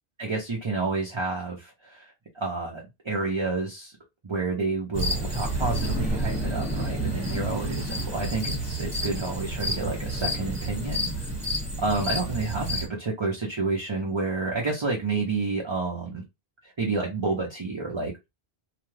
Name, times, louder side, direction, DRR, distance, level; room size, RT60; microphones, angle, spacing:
voice 1, 0.2-3.9 4.2-11.1 11.8-16.2 16.6-18.1, right 3 dB, 30° right, 0.7 m, -29 dB
sound 1, 4.9-12.9, right 1 dB, 5° right, 1.2 m, -29 dB
2.9 x 2.3 x 3.2 m
omnidirectional pair, 1.0 m